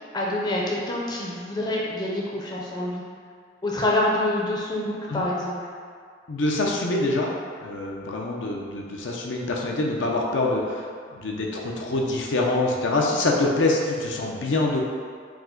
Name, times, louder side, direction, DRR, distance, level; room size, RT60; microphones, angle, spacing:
voice 1, 0.1-3.0 3.6-5.6, left 1 dB, 20° left, -4 dB, 0.5 m, -26 dB
voice 2, 6.3-7.3 7.6-10.9 11.1-14.8, left 2 dB, 80° left, -1 dB, 0.5 m, -25 dB
4.8 x 2.1 x 3.7 m, 2.1 s
head